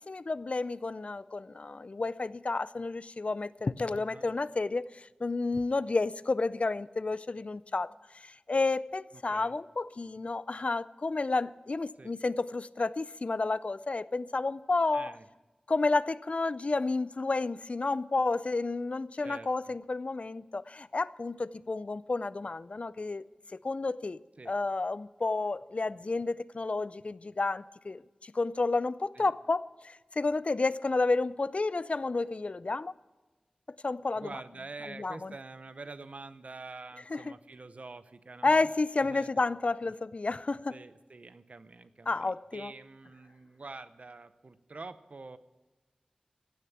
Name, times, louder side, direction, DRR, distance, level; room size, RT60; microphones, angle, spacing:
voice 1, 0.1-15.1 15.7-23.2 23.5-24.2 24.5-32.9 33.8-34.3 35.0-35.3 37.1-37.3 38.4-40.8 42.1-42.7, left 3 dB, 55° left, 18 dB, 0.4 m, -31 dB
voice 2, 3.9-4.3 9.3-9.6 12.0-12.1 14.9-15.3 19.2-19.7 24.4-24.5 29.1-29.3 34.1-38.7 39.0-39.6 40.7-45.4, right 3 dB, 65° right, 13 dB, 0.7 m, -46 dB
16.0 x 6.8 x 8.5 m, 1.2 s
wide cardioid pair, 45°, 2 cm